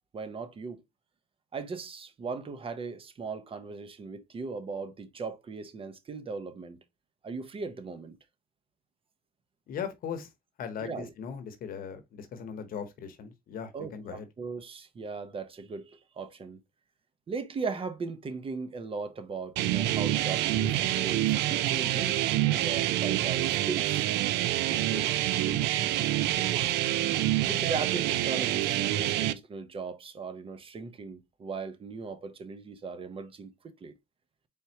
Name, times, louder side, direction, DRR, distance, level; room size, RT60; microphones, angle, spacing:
voice 1, 0.1-0.8 1.5-6.8 7.2-8.2 10.8-11.1 13.7-16.6 17.3-22.1 22.5-24.1 24.7-26.7 27.4-33.9, right 4 dB, 35° right, 0.8 m, -38 dB
voice 2, 9.7-10.3 10.6-14.2, left 7 dB, 60° left, 0.9 m, -38 dB
sound 1, 19.6-29.3, right 14 dB, 80° right, 0.4 m, -27 dB
4.3 x 3.5 x 2.8 m
cardioid pair, 110°, 17 cm